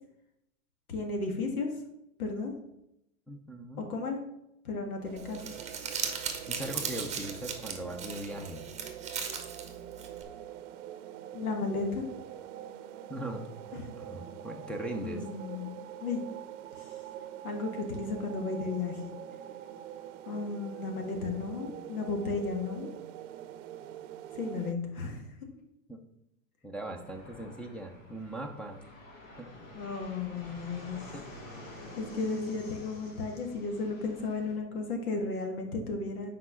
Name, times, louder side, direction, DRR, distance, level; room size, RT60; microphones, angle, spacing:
voice 1, 0.9-1.7 2.2-2.5 3.8-4.2 4.7-5.5 11.3-12.0 13.7-13.8 15.0-15.7 16.0-16.2 16.8-16.9 17.4-19.2 20.3-22.9 24.3-25.3 29.7-31.0 31.7-36.3, left 3 dB, 85° left, 3 dB, 1.8 m, -34 dB
voice 2, 3.3-3.9 6.5-8.6 13.1-13.4 14.0-15.2 25.9-26.0 26.6-28.8 29.4-29.5 31.1-31.3, right 1 dB, ahead, 4 dB, 0.6 m, -39 dB
sound 1, 5.0-24.7, right 11 dB, 60° right, 0.7 m, -45 dB
Crumpling crinkling, 5.2-10.2, right 6 dB, 15° right, 1.1 m, -38 dB
Fixed-wing aircraft airplane, 26.9-34.6, left 1 dB, 65° left, 2.8 m, -49 dB
6.0 x 4.9 x 5.7 m, 0.83 s
hypercardioid pair, 125°, 43 cm